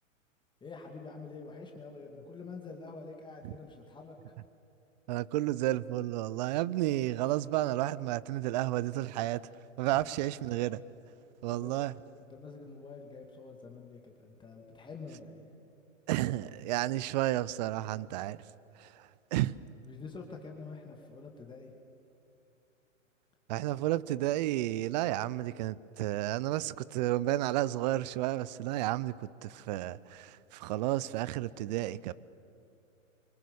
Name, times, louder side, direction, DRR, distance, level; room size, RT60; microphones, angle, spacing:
voice 1, 0.6-4.1 9.9-10.0 11.5-11.9 12.3-15.5 19.8-21.7, left 4 dB, 10° left, 1 dB, 2.4 m, -47 dB
voice 2, 5.1-9.4 9.8-10.8 11.4-11.9 16.1-18.4 18.8-18.9 19.3-19.5 23.5-29.2 29.4-32.1, right 15 dB, 35° right, 20 dB, 0.6 m, -31 dB
28.5 x 24.5 x 7.1 m, 2.8 s
hypercardioid pair, 115°, 40 cm